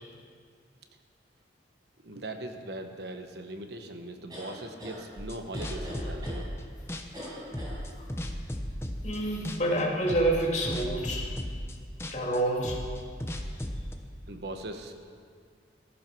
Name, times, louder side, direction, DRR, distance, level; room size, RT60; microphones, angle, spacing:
voice 1, 2.0-6.5 14.3-14.9, right 1 dB, 60° right, 5 dB, 1.2 m, -40 dB
sound 1, 4.3-5.0 5.5-6.4 7.1-7.8, equal, 20° right, 5.1 m, -41 dB
sound 2, 5.2-6.6 6.9-9.2 9.4-9.8 10.1-13.9, equal, 15° left, 0.9 m, -35 dB
voice 2, 9.0-11.3 12.1-12.8, right 1 dB, 40° left, -3 dB, 2.9 m, -28 dB
14.5 x 14.5 x 6.1 m, 2.1 s
head